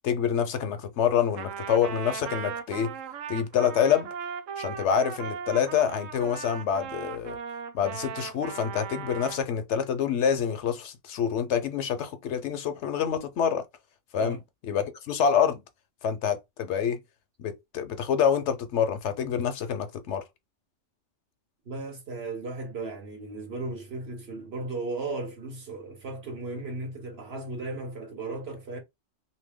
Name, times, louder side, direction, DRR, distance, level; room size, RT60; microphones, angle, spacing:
voice 1, 0.0-2.9 3.3-4.1 4.6-7.4 7.7-13.6 14.1-14.4 14.7-15.6 16.0-17.0 17.4-20.2, left 8 dB, 70° left, 0.9 m, -26 dB
Trumpet, 1.4-9.5, right 7 dB, 90° right, 1.0 m, -38 dB
voice 2, 21.6-28.8, right 2 dB, 55° right, 1.2 m, -36 dB
2.8 x 2.7 x 3.5 m
omnidirectional pair, 1.3 m